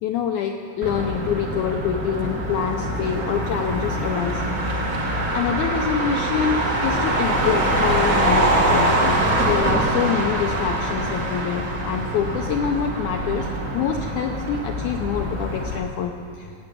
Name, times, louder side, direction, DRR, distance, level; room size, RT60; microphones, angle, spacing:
voice 1, 0.0-4.4 4.8-5.0 5.3-16.5, left 8 dB, 80° left, 4 dB, 1.7 m, -26 dB
Motor vehicle (road), 0.8-15.8, right 1 dB, 70° right, 0.7 m, -24 dB
17.0 x 7.9 x 8.3 m, 2.3 s
omnidirectional pair, 4.2 m